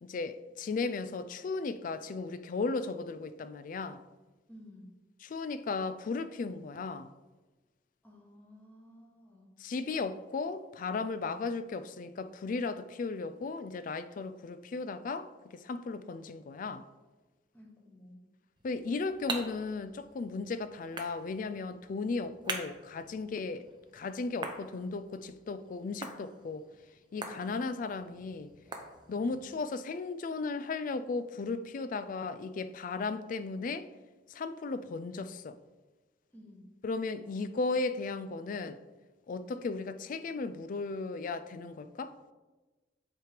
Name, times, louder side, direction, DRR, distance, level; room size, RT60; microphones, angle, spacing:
voice 1, 0.0-4.0 5.2-7.1 9.6-16.8 18.6-23.7 23.9-26.7 27.1-28.5 29.1-33.9 34.3-35.6 36.8-38.8 39.3-42.1, left 4 dB, 50° left, 0.3 m, -36 dB
voice 2, 4.5-4.9 8.0-9.5 17.5-18.2 29.2-29.5 36.3-36.7, left 1 dB, 10° left, 1.2 m, -54 dB
sound 1, 18.6-29.4, right 3 dB, 25° right, 0.7 m, -45 dB
7.4 x 3.2 x 5.0 m
head